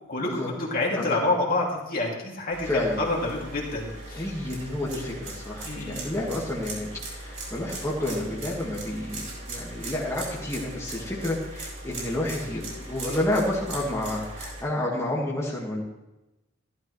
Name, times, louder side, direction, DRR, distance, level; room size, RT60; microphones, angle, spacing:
voice 1, 0.1-2.7 3.0-4.3 5.7-6.3, left 2 dB, 45° left, -2 dB, 2.5 m, -28 dB
sound 1, 2.5-14.6, right 2 dB, 40° right, 4.9 m, -39 dB
voice 2, 2.6-3.0 4.1-12.6 12.9-15.8, left 1 dB, 15° left, -5 dB, 1.8 m, -30 dB
14.5 x 12.0 x 3.2 m, 1.0 s
head